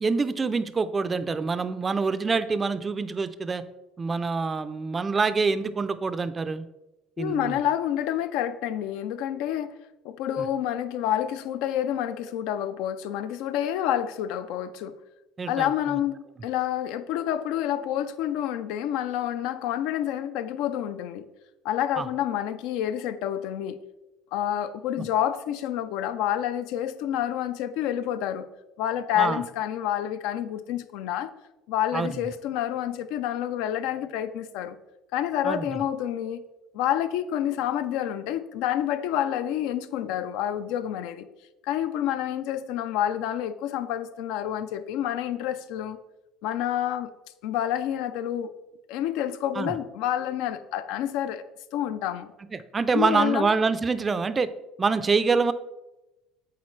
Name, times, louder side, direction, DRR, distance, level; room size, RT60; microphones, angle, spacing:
voice 1, 0.0-3.6 4.0-6.7 7.2-7.6 10.4-10.5 15.4-16.0 22.0-22.1 25.0-25.1 29.2-29.4 31.9-32.2 35.4-35.8 49.5-49.8 52.5-54.5 54.8-55.5, right 4 dB, 25° right, 13 dB, 0.4 m, -26 dB
voice 2, 7.2-9.7 10.0-14.9 15.5-21.2 21.6-23.8 24.3-28.5 28.8-31.3 31.7-34.8 35.1-36.4 36.7-41.3 41.6-46.0 46.4-47.1 47.4-48.5 48.9-51.5 51.7-52.3 52.9-53.5, left 11 dB, 75° left, 12 dB, 0.4 m, -28 dB
8.4 x 3.9 x 3.2 m, 0.98 s
cardioid pair, 120°, 0 cm